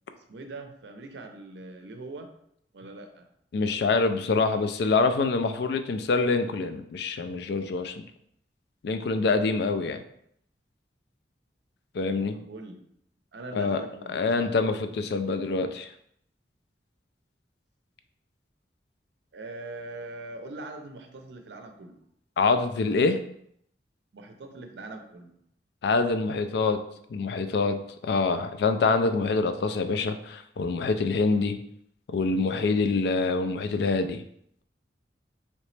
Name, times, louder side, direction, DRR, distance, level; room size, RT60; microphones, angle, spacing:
voice 1, 0.3-2.3 2.7-3.3 12.3-12.8 13.3-14.5 19.3-22.0 24.1-25.4, right 2 dB, 70° right, 5 dB, 0.5 m, -42 dB
voice 2, 3.5-7.9 8.8-10.0 11.9-12.4 13.5-13.8 14.1-15.9 22.4-23.2 25.8-26.8 27.1-31.6 32.1-34.2, left 4 dB, 65° left, 9 dB, 0.3 m, -25 dB
3.1 x 2.9 x 3.2 m, 0.70 s
head